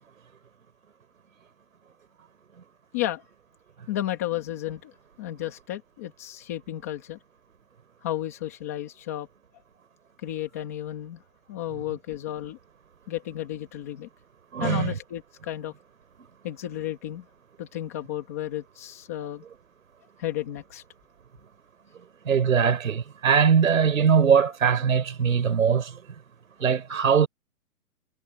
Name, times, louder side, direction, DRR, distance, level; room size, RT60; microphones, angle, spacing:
voice 1, 3.9-4.9 5.2-7.2 8.0-9.3 10.2-11.2 11.5-12.6 13.1-14.1 14.6-15.7 16.4-17.3 17.6-19.4 20.2-20.8, left 13 dB, 10° left, 1.4 m, -33 dB
voice 2, 14.5-14.9 22.3-25.9 26.6-27.3, right 7 dB, 55° right, 3.9 m, -21 dB
hypercardioid pair, 180°, 47 cm